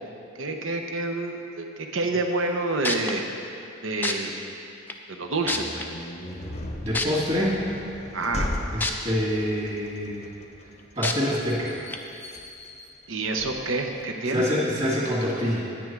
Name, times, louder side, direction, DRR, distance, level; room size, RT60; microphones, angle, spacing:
voice 1, 0.4-3.2 3.8-4.3 5.1-5.9 8.1-8.5 13.1-14.4, right 2 dB, 70° right, 3 dB, 0.9 m, -28 dB
sound 1, 2.5-2.6 2.8-3.1 4.0-4.1 4.9-5.0 5.5-5.8 6.9-7.1 8.8-8.9 9.4-9.5 11.0-11.1 11.9-12.0, left 3 dB, 10° left, 0.4 m, -26 dB
sound 2, 5.4-14.1, left 1 dB, 30° left, 0.7 m, -37 dB
voice 2, 6.8-7.6 8.7-10.3 11.0-11.8 14.3-15.7, equal, 30° right, -5 dB, 2.2 m, -26 dB
10.0 x 9.1 x 4.6 m, 2.6 s
head